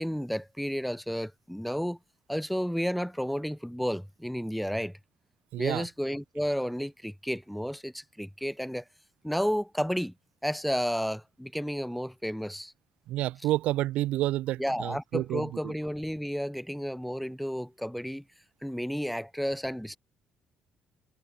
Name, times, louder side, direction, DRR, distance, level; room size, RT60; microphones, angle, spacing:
voice 1, 0.0-2.0 2.3-4.9 5.6-8.8 9.2-10.1 10.4-12.7 14.6-18.2 18.6-20.0, equal, ahead, 5.5 m, -32 dB
voice 2, 5.5-5.8 13.1-15.7, right 15 dB, 85° right, 6.8 m, -29 dB
cardioid pair, 130°, 2 cm